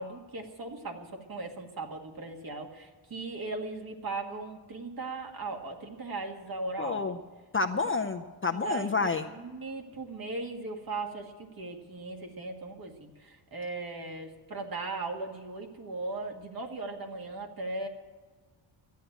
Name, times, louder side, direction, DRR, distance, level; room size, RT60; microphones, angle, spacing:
voice 1, 0.0-7.2 8.6-17.9, right 3 dB, 45° right, 3 dB, 1.9 m, -38 dB
voice 2, 6.8-7.2 7.5-9.3, left 4 dB, 25° left, 6 dB, 0.5 m, -29 dB
13.0 x 9.4 x 9.2 m, 1.4 s
wide cardioid pair, 160°, 47 cm